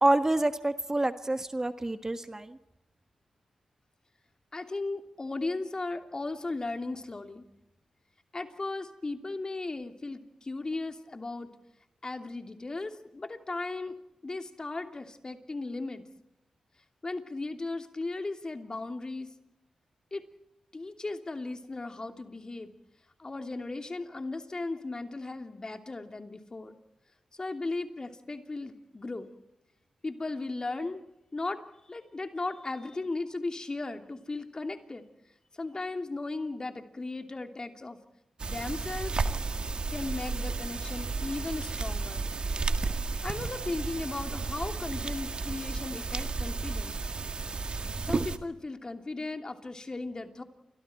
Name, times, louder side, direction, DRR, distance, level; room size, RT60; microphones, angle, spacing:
voice 1, 0.0-2.6, right 2 dB, 25° right, 10 dB, 1.5 m, -27 dB
voice 2, 4.5-7.5 8.3-11.5 12.0-14.0 14.2-16.1 17.0-19.3 20.1-20.2 20.7-22.7 23.2-26.7 27.3-29.3 30.0-31.0 31.3-35.1 35.5-38.0 38.4-39.1 39.9-42.3 43.2-47.0 48.0-50.4, left 3 dB, 40° left, 6 dB, 2.9 m, -36 dB
sound 1, 38.4-48.4, right 4 dB, 55° right, 1.9 m, -33 dB
29.5 x 25.0 x 4.5 m, 0.89 s
supercardioid pair, 40°, 2 cm